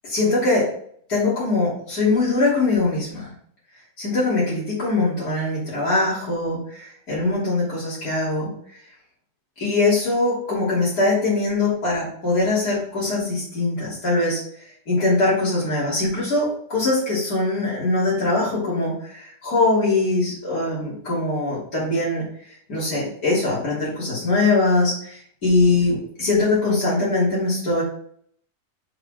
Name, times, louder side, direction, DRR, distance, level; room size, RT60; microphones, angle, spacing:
voice 1, 0.0-0.7 1.1-3.3 4.0-8.5 9.6-14.4 14.9-22.2 22.7-27.8, left 2 dB, 65° left, -8 dB, 3.7 m, -22 dB
6.8 x 6.1 x 3.8 m, 0.62 s
omnidirectional pair, 1.7 m